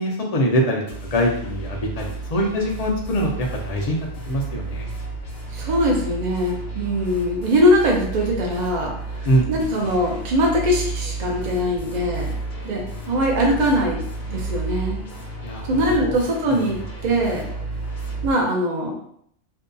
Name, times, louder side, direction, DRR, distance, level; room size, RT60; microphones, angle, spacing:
voice 1, 0.0-4.9 9.2-9.5 15.4-16.2 16.7-16.8, equal, 50° left, 0 dB, 0.4 m, -23 dB
sound 1, 0.9-18.3, right 3 dB, 65° left, 0.9 m, -32 dB
voice 2, 5.5-12.3 12.6-14.0 14.3-15.0 15.7-17.4 18.2-19.0, equal, 50° right, 0 dB, 0.6 m, -22 dB
2.6 x 2.2 x 2.5 m, 0.67 s
omnidirectional pair, 1.2 m